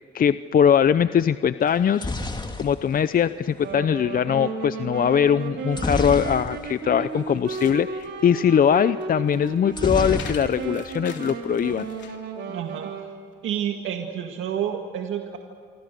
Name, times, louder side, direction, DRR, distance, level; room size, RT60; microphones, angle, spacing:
voice 1, 0.0-2.1 2.6-11.9, left 8 dB, 45° left, 13 dB, 0.7 m, -21 dB
sound 1, 1.7-3.8 5.7-6.9 7.2-7.3 7.6-7.8 9.7-10.9 11.2-11.8, left 2 dB, 20° left, 2.6 m, -30 dB
Wind instrument woodwind instrument, 3.6-13.1, right 5 dB, 65° right, 4.5 m, -34 dB
sound 2, 7.1-12.3, left 7 dB, 65° left, 3.2 m, -45 dB
voice 2, 12.5-13.1 13.4-15.4, right 9 dB, 80° right, 3 dB, 2.0 m, -29 dB
27.0 x 25.0 x 6.7 m, 2.3 s
cardioid pair, 90°, 20 cm